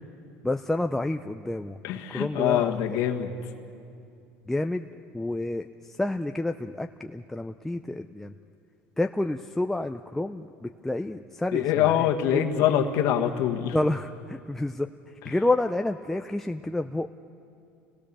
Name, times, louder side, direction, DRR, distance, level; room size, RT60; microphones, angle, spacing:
voice 1, 0.4-1.8 2.1-3.0 4.5-4.9 5.1-8.3 9.0-12.4 13.7-17.1, left 2 dB, 5° left, 5 dB, 0.5 m, -29 dB
voice 2, 1.8-3.4 11.5-13.8, left 10 dB, 70° left, 3 dB, 1.6 m, -24 dB
29.5 x 20.0 x 6.9 m, 2.5 s
supercardioid pair, 115°, 6 cm